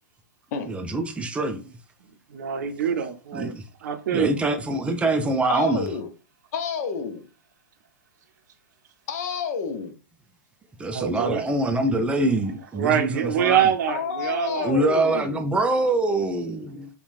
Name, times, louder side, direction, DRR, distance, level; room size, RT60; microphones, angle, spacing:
voice 1, 0.6-1.7 3.3-3.6 4.1-5.9 10.8-13.7 14.6-16.9, right 2 dB, 10° right, 0.4 m, -24 dB
voice 2, 2.3-3.5 3.8-4.6 10.9-11.4 12.8-14.7, right 8 dB, 65° right, 0.5 m, -25 dB
voice 3, 5.5-6.1 6.5-7.3 9.1-10.0 13.9-15.5, left 6 dB, 55° left, 0.5 m, -29 dB
2.9 x 2.2 x 2.5 m
hypercardioid pair, 110°, 10 cm